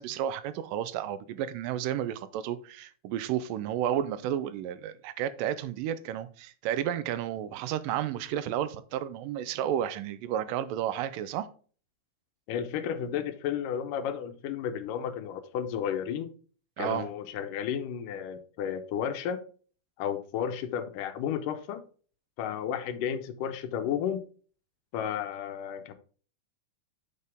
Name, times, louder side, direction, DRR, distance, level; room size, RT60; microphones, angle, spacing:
voice 1, 0.0-11.5 16.8-17.1, right 10 dB, 90° right, 2.3 m, -32 dB
voice 2, 12.5-16.3 16.8-19.4 20.0-21.8 22.4-24.3 24.9-25.9, left 8 dB, 80° left, 2.4 m, -32 dB
6.7 x 6.6 x 3.5 m
omnidirectional pair, 3.8 m